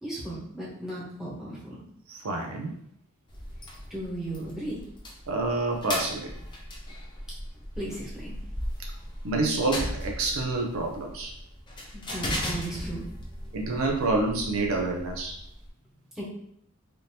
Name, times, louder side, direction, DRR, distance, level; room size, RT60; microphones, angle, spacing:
voice 1, 0.0-1.8 3.9-4.8 7.7-8.4 11.9-13.0 16.1-16.2, right 1 dB, 5° right, -8 dB, 1.0 m, -36 dB
voice 2, 2.1-2.7 5.3-6.3 8.8-8.9 9.2-11.3 13.5-15.4, right 2 dB, 70° right, 1 dB, 0.5 m, -28 dB
sound 1, 3.3-15.7, left 1 dB, 20° left, 0.6 m, -37 dB
3.4 x 2.6 x 2.8 m, 0.73 s
head